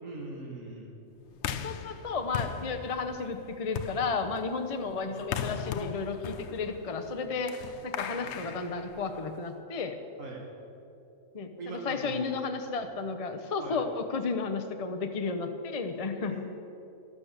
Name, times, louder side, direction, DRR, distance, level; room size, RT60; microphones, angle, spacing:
voice 1, 0.0-0.9 8.1-8.4 10.2-10.4 11.6-12.3 13.6-13.8 16.2-16.5, right 3 dB, 80° right, -1 dB, 2.4 m, -41 dB
sound 1, 1.4-9.5, left 7 dB, 65° left, 0.9 m, -39 dB
voice 2, 1.6-7.5 7.8-10.0 11.3-16.4, left 4 dB, 35° left, 6 dB, 0.7 m, -33 dB
12.5 x 12.5 x 6.5 m, 2.9 s
omnidirectional pair, 1.4 m